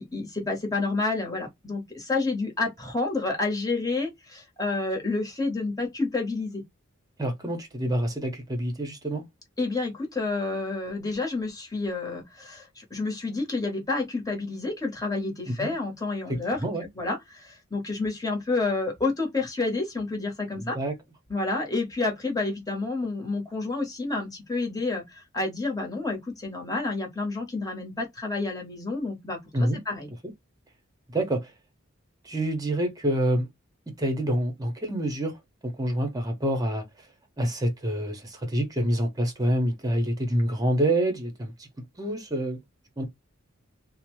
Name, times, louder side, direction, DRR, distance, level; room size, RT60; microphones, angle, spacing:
voice 1, 0.0-6.6 9.6-16.6 17.0-20.8 21.3-30.1, left 3 dB, 20° left, 1.0 m, -29 dB
voice 2, 7.2-9.2 15.5-15.7 16.3-16.9 20.6-20.9 29.5-29.8 31.1-31.5 32.2-33.5 34.0-35.4 35.6-36.8 37.4-41.7 42.0-42.6 43.0-43.1, right 1 dB, 20° right, 0.8 m, -27 dB
2.7 x 2.0 x 3.0 m
head